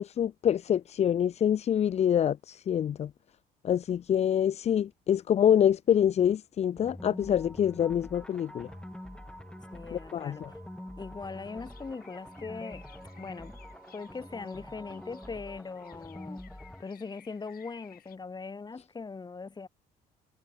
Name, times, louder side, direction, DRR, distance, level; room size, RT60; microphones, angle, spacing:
voice 1, 0.0-3.1 3.6-8.7 9.9-10.5, left 9 dB, 40° left, 0.5 m, -26 dB
sound 1, 6.8-16.8, left 1 dB, 5° left, 5.2 m, -46 dB
sound 2, 8.2-15.4, right 10 dB, 55° right, 5.1 m, -59 dB
voice 2, 9.7-10.6 11.0-12.8 13.2-13.5 13.9-16.4 16.8-19.7, left 4 dB, 25° left, 6.1 m, -40 dB
sound 3, 11.2-18.2, left 11 dB, 60° left, 6.8 m, -59 dB
cardioid pair, 110°, 17 cm